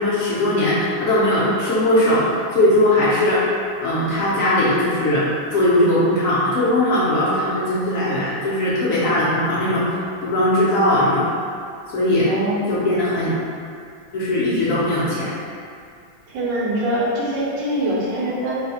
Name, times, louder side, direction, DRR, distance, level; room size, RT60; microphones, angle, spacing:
voice 1, 0.0-3.4 3.8-11.3 11.9-12.3 12.7-13.3 14.1-15.3, left 1 dB, 90° left, -9 dB, 0.7 m, -19 dB
voice 2, 12.2-12.8 16.3-18.6, right 1 dB, 65° right, -6 dB, 1.3 m, -23 dB
3.3 x 2.4 x 4.1 m, 2.3 s
omnidirectional pair, 2.3 m